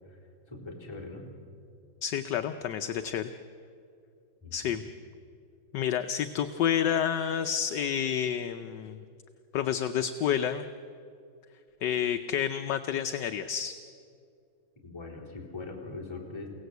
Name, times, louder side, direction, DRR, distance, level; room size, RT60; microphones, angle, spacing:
voice 1, 0.5-1.3 4.4-4.8 14.8-16.5, left 3 dB, 15° left, -4 dB, 4.1 m, -41 dB
voice 2, 2.0-3.3 4.5-4.8 5.7-9.0 9.5-10.7 11.8-13.7, left 9 dB, 65° left, 8 dB, 1.3 m, -29 dB
29.5 x 18.0 x 8.1 m, 2.5 s
omnidirectional pair, 2.2 m